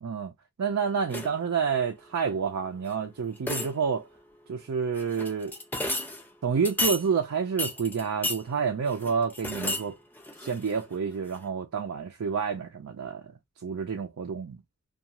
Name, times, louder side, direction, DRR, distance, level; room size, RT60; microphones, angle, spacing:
voice 1, 0.0-0.3 0.6-4.1 4.5-5.6 6.4-10.0 10.4-13.2 13.6-14.6, right 6 dB, 80° right, 0.4 m, -29 dB
sound 1, 1.1-1.5 2.9-3.0 3.4-4.0 5.0-6.2 6.6-7.1 7.6-8.4 8.9-9.9 10.2-10.9 11.3-11.4, left 2 dB, 10° left, 0.4 m, -32 dB
2.4 x 2.3 x 2.8 m
head